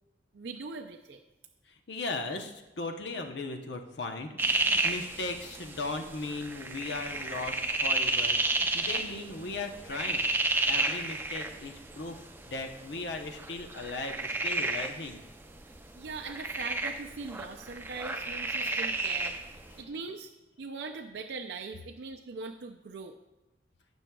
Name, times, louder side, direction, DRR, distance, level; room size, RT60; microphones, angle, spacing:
voice 1, 0.3-1.2 15.6-20.3 20.6-23.2, right 4 dB, 80° right, 3 dB, 0.5 m, -41 dB
voice 2, 1.7-10.3 10.7-12.2 12.5-15.2 18.6-19.0 19.3-19.4, left 3 dB, 80° left, 5 dB, 0.9 m, -38 dB
sound 1, 4.4-19.8, right 2 dB, 15° right, 0.5 m, -32 dB
16.0 x 6.3 x 2.3 m, 1.1 s
head